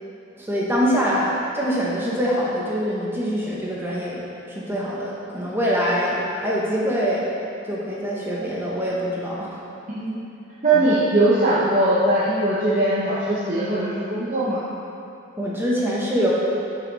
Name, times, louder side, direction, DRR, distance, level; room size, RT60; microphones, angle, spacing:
voice 1, 0.4-4.2 4.5-7.3 7.7-9.5 10.7-10.9 15.4-16.3, equal, 10° right, -6 dB, 1.1 m, -24 dB
voice 2, 10.6-14.6, right 2 dB, 35° right, -10 dB, 1.0 m, -20 dB
6.7 x 6.0 x 4.1 m, 2.8 s
head